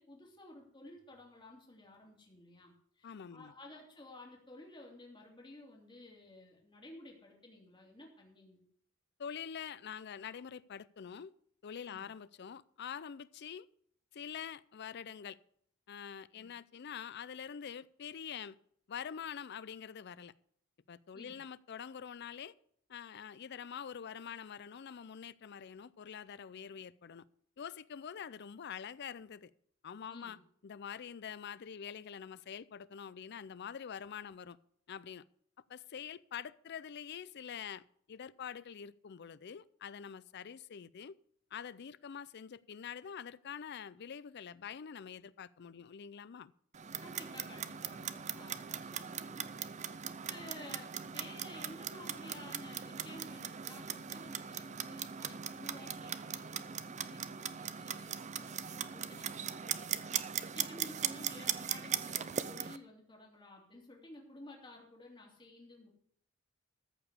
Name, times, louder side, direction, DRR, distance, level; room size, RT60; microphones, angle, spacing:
voice 1, 0.0-8.6 11.9-12.1 16.4-16.5 21.1-21.4 30.1-30.4 47.0-49.5 50.3-59.9 60.2-65.9, left 1 dB, 25° left, 2.8 m, -54 dB
voice 2, 3.0-3.5 9.2-11.3 11.6-13.7 14.1-15.4 15.9-18.6 18.9-20.3 20.9-22.5 22.9-27.3 27.6-29.5 29.8-30.4 30.6-34.6 34.9-35.3 35.7-41.2 41.5-46.5, left 7 dB, 55° left, 0.4 m, -45 dB
Clock, 46.7-62.8, right 8 dB, 35° right, 0.6 m, -39 dB
14.0 x 5.0 x 8.2 m
head